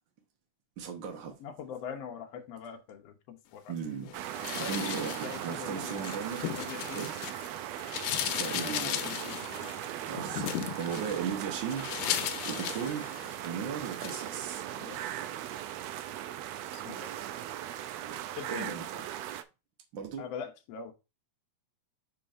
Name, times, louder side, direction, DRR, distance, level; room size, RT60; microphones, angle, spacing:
voice 1, 0.8-1.4 3.7-4.1 4.6-6.5 6.9-7.1 8.4-9.0 10.1-13.1 13.4-14.7 17.9-18.2 18.5-19.0 19.9-20.3, right 7 dB, 55° right, 1.3 m, -37 dB
voice 2, 1.4-6.1 6.5-7.1 8.4-9.7 14.0-14.2 14.7-15.0 16.7-17.1 18.4-18.7 20.2-20.9, left 7 dB, 65° left, 1.7 m, -43 dB
sound 1, 4.1-19.4, right 12 dB, 80° right, 1.6 m, -39 dB
sound 2, 4.3-7.5 7.8-13.5 13.8-14.3, left 11 dB, 85° left, 2.2 m, -36 dB
5.6 x 4.5 x 5.1 m
omnidirectional pair, 3.5 m